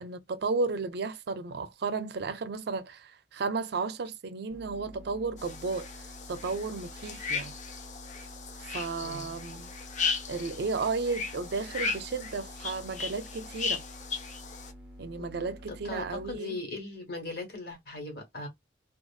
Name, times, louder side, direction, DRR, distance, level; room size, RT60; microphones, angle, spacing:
voice 1, 0.0-6.0 6.3-7.5 8.6-9.7 10.3-13.8 15.0-16.6, right 4 dB, 65° right, 0.5 m, -33 dB
sound 1, 4.5-16.4, equal, 5° right, 0.7 m, -49 dB
sound 2, 5.4-14.7, left 5 dB, 45° left, 0.6 m, -36 dB
voice 2, 9.0-9.3 15.2-18.5, left 2 dB, 65° left, 1.4 m, -39 dB
2.6 x 2.4 x 2.4 m
head